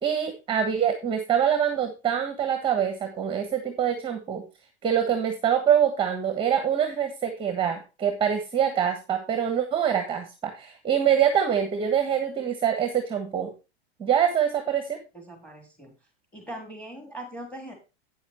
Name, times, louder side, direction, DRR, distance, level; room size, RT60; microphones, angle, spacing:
voice 1, 0.0-4.4 4.8-13.5 14.0-15.0, right 9 dB, 15° right, 7 dB, 1.3 m, -25 dB
voice 2, 15.1-15.9 16.3-17.7, right 1 dB, 5° left, 4 dB, 3.7 m, -40 dB
9.0 x 7.1 x 4.3 m, 0.29 s
supercardioid pair, 145°, 32 cm